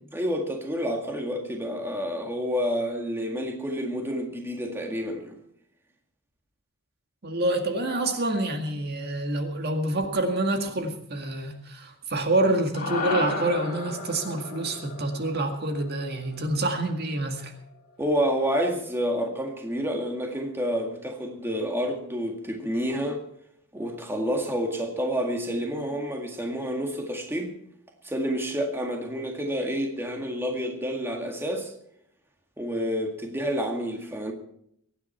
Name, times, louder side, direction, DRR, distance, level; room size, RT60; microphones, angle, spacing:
voice 1, 0.1-5.4 18.0-23.2 23.7-27.5 28.0-31.7 32.6-34.3, equal, 10° right, 1.9 m, -29 dB
voice 2, 7.2-17.5, right 2 dB, 50° right, 2.0 m, -27 dB
sound 1, 12.7-17.2, left 2 dB, 40° left, 4.0 m, -34 dB
23.5 x 9.9 x 4.4 m
head